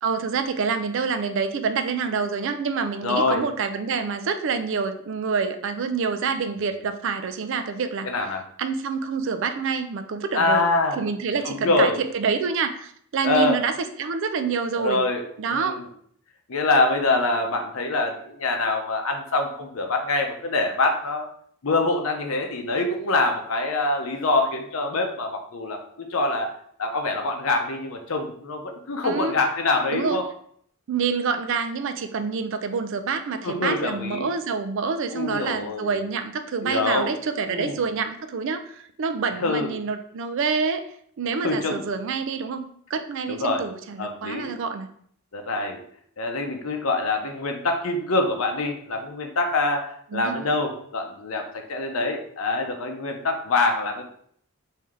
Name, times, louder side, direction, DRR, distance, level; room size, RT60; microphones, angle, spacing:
voice 1, 0.0-8.1 8.6-10.7 11.0-15.0 15.4-15.8 29.0-29.4 29.9-30.2 30.9-40.9 41.2-44.9 50.1-50.5, right 5 dB, 60° right, 9 dB, 0.4 m, -27 dB
voice 2, 3.0-3.4 8.0-8.4 10.3-11.0 11.4-12.0 13.2-13.6 14.7-15.2 15.5-15.9 16.5-21.3 21.6-25.8 26.1-26.5 26.8-30.3 33.4-34.3 35.1-35.9 36.6-37.1 37.5-37.8 39.4-39.7 41.4-41.8 43.3-43.7 44.0-44.5 45.3-45.8 46.2-54.0, left 2 dB, 70° left, 4 dB, 0.6 m, -25 dB
3.2 x 2.7 x 3.6 m, 0.63 s
head